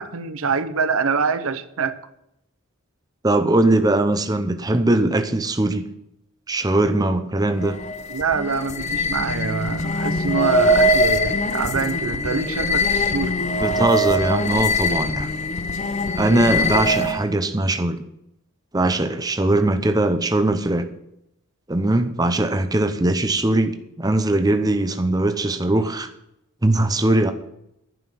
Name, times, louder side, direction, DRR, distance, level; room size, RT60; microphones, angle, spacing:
voice 1, 0.0-2.0 8.1-13.4, right 5 dB, 75° right, 12 dB, 0.8 m, -25 dB
voice 2, 3.2-5.9 6.5-7.8 13.6-15.3 16.2-18.0 18.7-20.9 21.7-26.1 26.6-27.3, right 2 dB, 20° right, 8 dB, 0.7 m, -20 dB
sound 1, 7.6-17.3, left 1 dB, 30° left, 0.6 m, -22 dB
11.0 x 5.9 x 8.8 m, 0.81 s
head